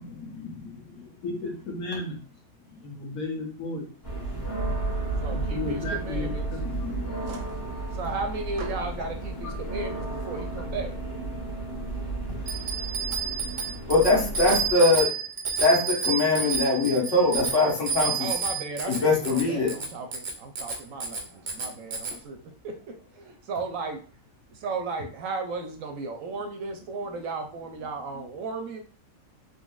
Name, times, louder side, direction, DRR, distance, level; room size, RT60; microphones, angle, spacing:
voice 1, 0.3-1.0 2.7-2.8 6.7-7.4 13.9-15.1 15.6-18.3 18.9-19.7, left 2 dB, 55° left, -2 dB, 1.5 m, -23 dB
voice 2, 1.2-2.2 2.8-3.9 5.3-6.7, left 2 dB, 75° left, -1 dB, 1.5 m, -33 dB
sound 1, 4.0-14.7, right 2 dB, 15° left, 1.1 m, -33 dB
voice 3, 5.2-6.4 7.3-7.5 7.9-10.9 18.2-22.4 22.6-24.0 24.5-28.8, right 3 dB, 70° right, 5 dB, 0.9 m, -35 dB
Bicycle bell, 12.5-22.2, right 6 dB, 50° right, 0.5 m, -30 dB
3.9 x 3.1 x 2.3 m, 0.40 s
omnidirectional pair, 1.5 m